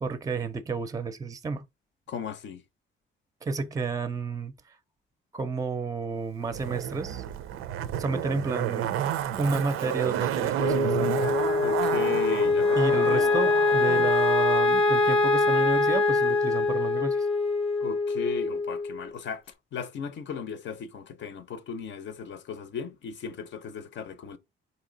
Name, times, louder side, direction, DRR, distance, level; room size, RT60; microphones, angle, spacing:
voice 1, 0.0-1.7 3.4-4.5 5.3-7.2 8.0-8.9 9.4-11.1 12.8-17.3, right 4 dB, 15° right, 0.5 m, -31 dB
voice 2, 2.1-2.6 11.6-13.3 17.8-19.4 19.7-24.4, left 6 dB, 65° left, 0.7 m, -36 dB
Zipper (clothing), 6.5-14.2 14.4-14.5, right 10 dB, 90° right, 0.5 m, -30 dB
Wind instrument woodwind instrument, 10.6-19.0, left 3 dB, 25° left, 0.6 m, -24 dB
4.2 x 2.8 x 3.9 m
cardioid pair, 120°, 21 cm